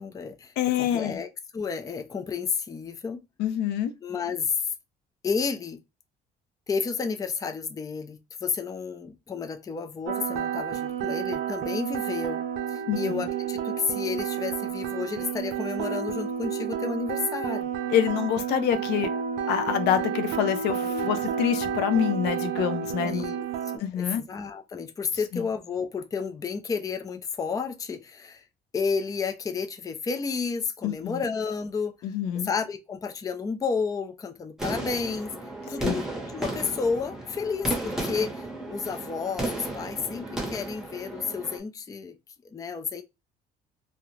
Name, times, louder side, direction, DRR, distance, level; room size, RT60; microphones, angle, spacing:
voice 1, 0.0-3.2 4.0-4.7 5.2-5.8 6.7-17.7 20.8-21.1 23.0-23.4 23.7-28.4 28.7-31.9 32.3-35.3 35.7-42.2 42.4-43.0, left 5 dB, 20° left, 0.4 m, -31 dB
voice 2, 0.6-1.2 3.4-3.9 12.9-13.1 17.9-19.1 19.5-23.3 23.8-24.2 25.3-25.4 30.8-31.2 32.0-32.5 35.8-36.0, left 9 dB, 80° left, 0.5 m, -26 dB
sound 1, 10.1-23.8, right 8 dB, 85° right, 0.5 m, -30 dB
sound 2, 34.6-41.6, right 1 dB, 5° right, 0.8 m, -34 dB
2.4 x 2.1 x 3.1 m
cardioid pair, 110°, 17 cm